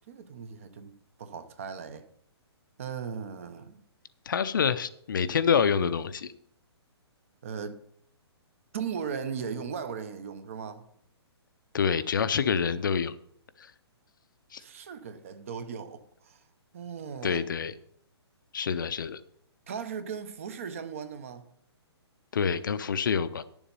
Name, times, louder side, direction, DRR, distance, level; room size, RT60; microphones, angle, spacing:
voice 1, 0.1-2.1 2.8-3.8 7.4-7.8 8.7-10.8 14.6-16.4 16.7-17.4 19.7-21.4, right 6 dB, 30° right, 0.6 m, -37 dB
voice 2, 4.3-6.3 11.7-13.1 14.5-14.6 17.2-17.7 18.5-19.2 22.3-23.4, left 6 dB, 50° left, 0.5 m, -27 dB
10.5 x 7.1 x 5.3 m
hypercardioid pair, 175°, 14 cm